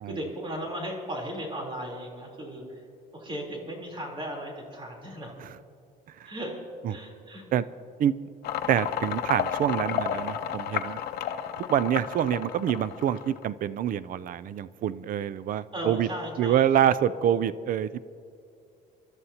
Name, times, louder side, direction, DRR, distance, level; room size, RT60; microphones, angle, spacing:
voice 1, 0.0-2.8 3.1-5.4 6.3-6.5 6.9-7.4 15.7-16.9 17.3-17.4, equal, 30° right, 0 dB, 3.7 m, -36 dB
sound 1, 8.4-13.4, left 9 dB, 70° left, 0.9 m, -32 dB
voice 2, 8.7-11.0 11.6-16.1 16.4-18.0, right 10 dB, 55° right, 16 dB, 0.5 m, -26 dB
28.0 x 12.5 x 2.9 m, 2.5 s
cardioid pair, 110°, 17 cm